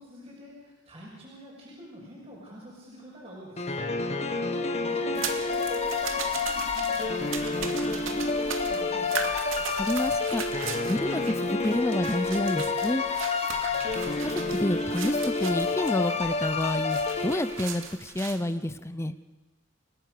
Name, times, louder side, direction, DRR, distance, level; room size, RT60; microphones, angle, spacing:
voice 1, 0.0-3.6 4.8-9.1 13.6-13.9, equal, 30° right, -4 dB, 6.2 m, -47 dB
sound 1, 3.6-17.9, left 4 dB, 35° left, 1.8 m, -29 dB
sound 2, 5.1-18.4, right 6 dB, 85° right, 2.4 m, -39 dB
voice 2, 9.8-10.4 10.9-13.0 14.2-19.2, left 1 dB, 15° left, 12 dB, 0.7 m, -29 dB
30.0 x 18.0 x 6.7 m, 1.2 s
head